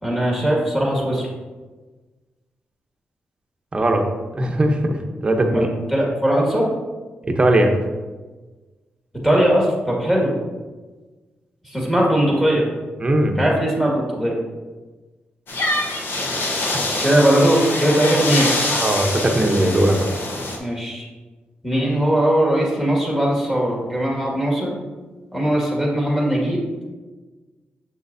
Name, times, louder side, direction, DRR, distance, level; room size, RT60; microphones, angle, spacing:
voice 1, 0.0-1.3 5.4-5.6 5.9-6.7 9.2-10.3 11.7-12.6 13.4-14.3 17.0-18.5 20.6-21.0 21.6-24.8 25.3-26.6, right 1 dB, 5° left, -3 dB, 1.8 m, -19 dB
voice 2, 3.7-4.0 4.3-5.7 7.2-7.8 13.0-13.4 18.8-20.1, right 1 dB, 25° right, 3 dB, 0.8 m, -19 dB
sound 1, 15.5-20.6, left 2 dB, 70° left, 1.0 m, -24 dB
7.1 x 6.3 x 2.7 m, 1.3 s
wide cardioid pair, 120°, 4 cm